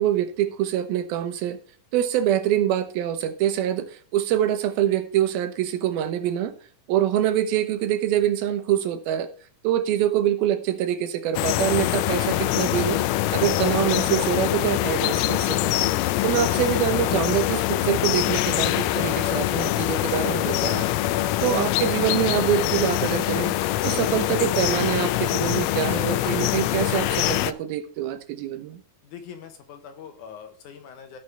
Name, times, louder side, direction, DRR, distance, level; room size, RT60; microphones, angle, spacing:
voice 1, 0.0-1.6 1.9-6.5 6.9-9.3 9.6-13.0 13.3-15.7 16.2-20.9 21.4-23.6 23.8-28.8, right 11 dB, 85° right, 2.9 m, -25 dB
sound 1, 11.3-27.5, left 15 dB, 85° left, 1.8 m, -24 dB
voice 2, 29.0-31.2, left 7 dB, 70° left, 2.2 m, -43 dB
16.0 x 5.5 x 3.4 m
omnidirectional pair, 4.2 m